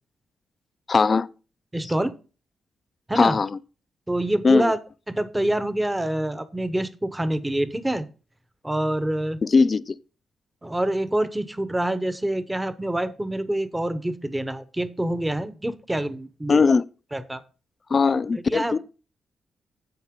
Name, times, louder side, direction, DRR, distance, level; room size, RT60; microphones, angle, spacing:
voice 1, 0.9-1.3 3.2-3.5 4.4-4.7 9.4-10.0 16.5-16.8 17.9-18.8, left 4 dB, 35° left, 0.4 m, -19 dB
voice 2, 1.7-2.1 3.1-3.4 4.1-4.8 5.1-8.1 8.6-9.4 10.6-16.6 17.1-17.4 18.3-18.7, right 1 dB, 10° right, 0.9 m, -26 dB
10.5 x 7.7 x 3.7 m
wide cardioid pair, 135°, 0 cm